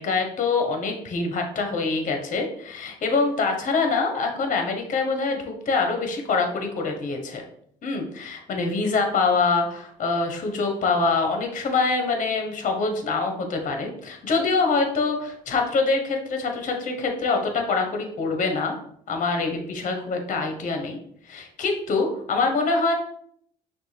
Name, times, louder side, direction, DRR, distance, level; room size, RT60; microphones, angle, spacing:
voice 1, 0.0-7.4 7.8-18.8 19.1-21.0 21.3-22.9, left 4 dB, 50° left, 4 dB, 1.1 m, -25 dB
6.0 x 2.5 x 3.3 m, 0.66 s
cardioid pair, 110°, 17 cm